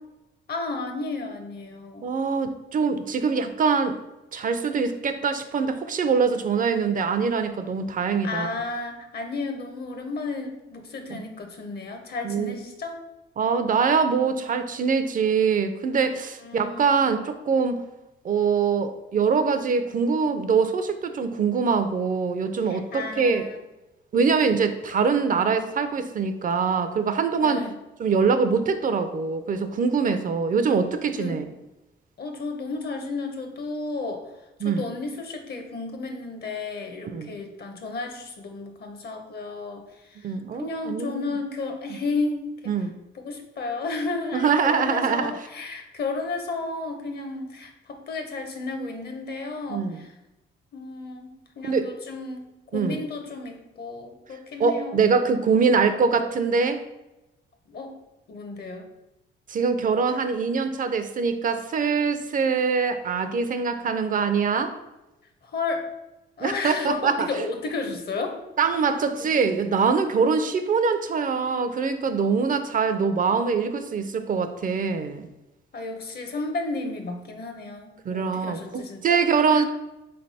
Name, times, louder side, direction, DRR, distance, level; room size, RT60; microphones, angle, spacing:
voice 1, 0.5-2.1 8.2-13.0 16.4-16.9 22.7-23.6 27.4-27.7 31.2-31.5 32.2-42.9 43.1-50.1 50.7-55.0 57.7-57.9 58.3-58.9 65.4-65.9 66.4-68.4 69.2-69.3 75.7-79.6, left 3 dB, 55° left, 5 dB, 0.8 m, -33 dB
voice 2, 2.0-4.0 4.3-8.5 11.1-11.2 12.2-12.5 13.4-17.8 18.2-23.5 24.1-27.6 28.0-31.4 34.6-34.8 37.0-37.3 40.2-41.3 42.7-42.9 44.3-45.3 49.7-50.0 51.7-51.8 52.7-53.0 54.6-56.8 59.5-64.7 66.4-67.3 68.6-75.3 78.1-79.6, right 5 dB, 45° right, 9 dB, 0.4 m, -23 dB
3.8 x 3.3 x 4.1 m, 0.97 s
cardioid pair, 90°, 20 cm